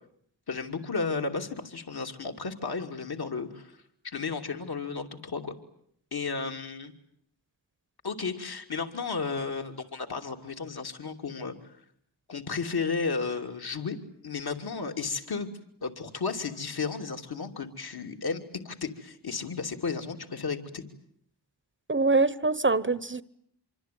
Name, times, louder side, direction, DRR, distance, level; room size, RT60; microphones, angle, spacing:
voice 1, 0.5-3.8 4.0-5.5 6.1-6.9 8.0-11.5 12.3-14.0 14.2-15.5 15.8-20.8, left 4 dB, 60° left, 3.0 m, -33 dB
voice 2, 21.9-23.2, right 3 dB, 25° right, 1.1 m, -24 dB
26.0 x 24.5 x 9.5 m
cardioid pair, 60°, 43 cm